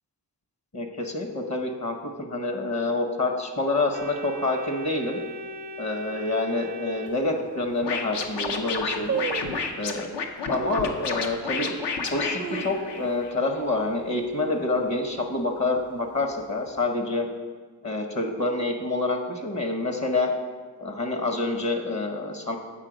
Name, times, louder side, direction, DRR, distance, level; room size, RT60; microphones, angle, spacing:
voice 1, 0.7-5.2 5.8-9.2 9.8-10.1 10.5-11.7 12.1-17.3 17.8-20.3 20.8-22.6, left 2 dB, 40° left, 4 dB, 0.9 m, -27 dB
Organ, 3.9-7.9, equal, 85° right, 0.6 m, -39 dB
sound 1, 7.1-7.2 7.8-7.9 8.1-8.5 9.1-9.8 10.6-11.0 11.5-11.6 12.1-13.3 13.6-13.7 14.0-14.4 14.8-15.1 15.8-16.5 16.8-16.9, right 7 dB, 35° right, 0.4 m, -34 dB
Scratching (performance technique), 7.8-13.3, left 4 dB, 75° left, 0.7 m, -30 dB
7.5 x 4.3 x 5.0 m, 1.5 s
cardioid pair, 50°, 42 cm